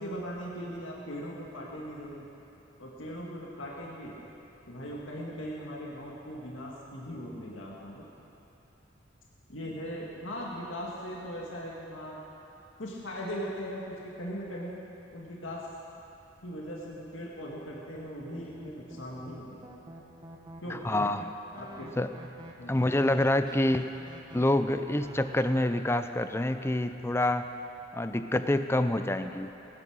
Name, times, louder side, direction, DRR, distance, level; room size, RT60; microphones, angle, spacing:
voice 1, 0.0-2.3 2.8-4.2 4.7-8.1 9.5-12.2 12.8-14.8 15.1-15.7 16.4-19.6 20.6-20.9 21.5-21.9 22.6-22.9, equal, 80° left, -3 dB, 2.0 m, -39 dB
sound 1, 17.9-25.6, right 1 dB, 25° right, 1.2 m, -48 dB
voice 2, 20.8-21.3 22.0-22.1 22.7-23.9 24.3-27.5 27.9-29.5, left 1 dB, 15° left, 9 dB, 0.5 m, -27 dB
19.5 x 10.5 x 6.5 m, 3.0 s
head